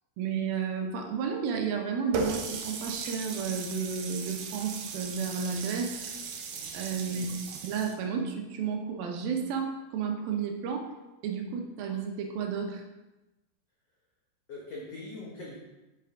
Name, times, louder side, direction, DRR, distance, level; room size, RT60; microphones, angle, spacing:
voice 1, 0.2-6.0 6.7-10.9 11.2-12.8, right 6 dB, 70° right, 3 dB, 2.5 m, -32 dB
Water tap faucet, 2.1-7.9, right 4 dB, 90° right, 1.7 m, -37 dB
voice 2, 7.1-7.4 14.5-15.6, left 2 dB, 85° left, -4 dB, 1.4 m, -42 dB
9.1 x 6.9 x 3.7 m, 1.1 s
omnidirectional pair, 5.0 m